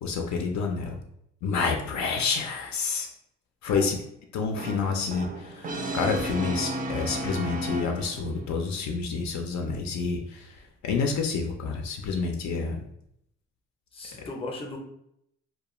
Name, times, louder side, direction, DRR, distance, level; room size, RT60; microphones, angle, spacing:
voice 1, 0.0-1.0 1.4-3.1 3.6-4.0 4.3-12.8, left 4 dB, 65° left, 2 dB, 0.5 m, -29 dB
Brass instrument, 4.6-8.4, right 1 dB, 30° right, 0.4 m, -33 dB
voice 2, 13.9-14.8, left 2 dB, 20° left, 1 dB, 0.6 m, -36 dB
2.3 x 2.2 x 2.9 m, 0.75 s
cardioid pair, 90°, 30 cm